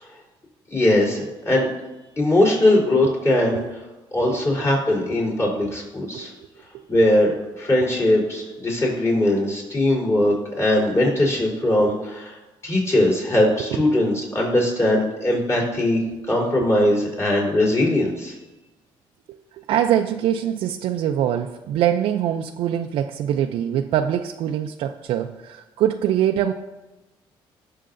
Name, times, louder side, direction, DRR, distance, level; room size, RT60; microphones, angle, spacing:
voice 1, 0.7-1.7 2.2-3.8 4.1-6.3 6.9-12.4 12.6-18.3, left 1 dB, 30° left, -3 dB, 3.6 m, -20 dB
voice 2, 19.3-26.5, right 10 dB, 80° right, 4 dB, 0.5 m, -23 dB
18.5 x 6.6 x 2.6 m, 1.1 s
cardioid pair, 110°, 9 cm